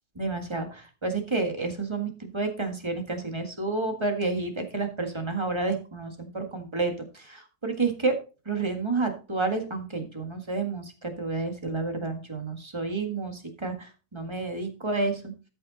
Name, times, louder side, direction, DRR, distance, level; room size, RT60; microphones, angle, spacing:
voice 1, 0.2-8.2 8.5-15.3, right 3 dB, 15° right, 4 dB, 1.7 m, -30 dB
13.5 x 5.7 x 4.0 m, 0.33 s
omnidirectional pair, 1.8 m